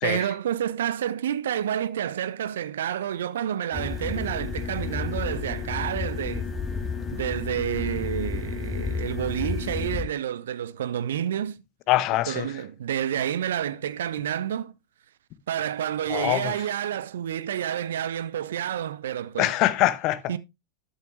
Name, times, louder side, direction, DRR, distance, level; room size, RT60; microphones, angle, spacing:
voice 1, 0.0-6.5 7.1-11.6 12.3-14.7 15.5-19.5 20.3-20.4, right 10 dB, 60° right, 0.7 m, -29 dB
sound 1, 3.7-10.0, left 5 dB, 15° left, 1.6 m, -31 dB
voice 2, 11.9-12.5 16.1-16.5 19.4-20.2, left 15 dB, 40° left, 0.8 m, -23 dB
12.0 x 6.5 x 3.2 m
figure-of-eight pair, 90°, 0 cm